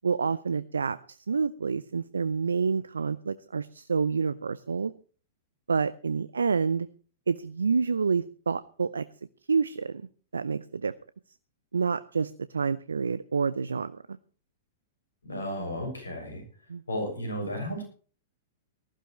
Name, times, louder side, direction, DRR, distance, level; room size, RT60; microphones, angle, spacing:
voice 1, 0.0-4.9 5.7-6.9 7.3-9.1 9.5-10.0 10.3-10.9 11.7-14.2 16.7-16.8, right 5 dB, 80° right, 15 dB, 0.5 m, -28 dB
voice 2, 15.2-16.4 16.9-17.8, equal, 85° left, 4 dB, 6.7 m, -33 dB
19.0 x 14.5 x 3.2 m, 0.40 s
figure-of-eight pair, 105°, 0 cm